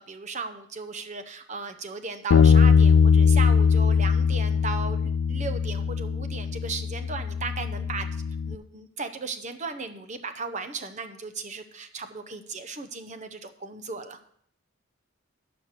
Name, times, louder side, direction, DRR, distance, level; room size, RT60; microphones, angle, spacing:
voice 1, 0.0-8.1 8.4-14.2, right 4 dB, 35° right, 9 dB, 0.7 m, -36 dB
Bass guitar, 2.3-8.6, left 6 dB, 80° left, 0.3 m, -21 dB
9.4 x 6.0 x 6.6 m, 0.65 s
head